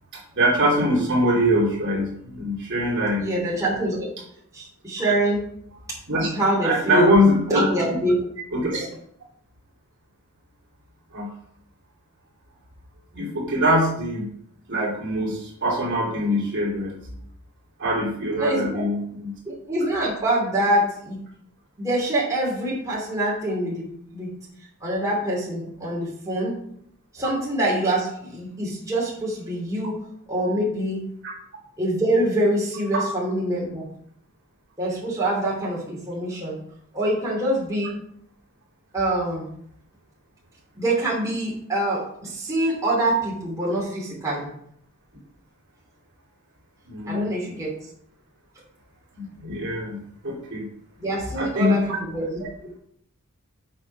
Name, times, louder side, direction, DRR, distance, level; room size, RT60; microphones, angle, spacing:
voice 1, 0.3-3.3 6.1-6.3 6.6-7.7 8.5-8.9 11.1-11.3 13.1-14.3 14.7-17.0 17.8-19.3 32.9-33.0 46.9-47.3 49.1-50.0 50.2-50.7 51.3-52.0, equal, 55° right, -3 dB, 3.2 m, -23 dB
voice 2, 3.2-4.1 4.5-5.4 6.3-7.1 7.5-8.2 8.7-8.9 18.4-18.8 19.4-21.2 21.8-24.3 24.8-26.6 27.1-30.0 30.3-31.1 31.8-33.8 34.8-36.6 36.9-38.0 38.9-39.5 40.7-44.5 47.1-47.8 51.0-52.5, right 1 dB, 15° right, -5 dB, 3.0 m, -25 dB
7.7 x 5.9 x 5.5 m, 0.67 s
head